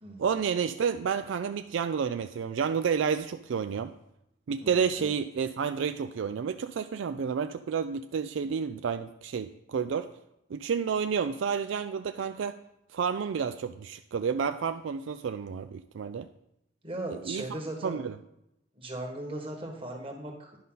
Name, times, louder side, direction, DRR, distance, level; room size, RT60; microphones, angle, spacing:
voice 1, 0.2-3.9 4.5-10.1 10.5-12.6 12.9-16.3 17.3-17.4 17.8-18.1, right 6 dB, 75° right, 9 dB, 0.3 m, -30 dB
voice 2, 4.6-5.1 16.8-18.0 18.7-20.6, right 1 dB, 30° right, 1 dB, 1.6 m, -38 dB
10.5 x 5.4 x 3.9 m, 0.82 s
head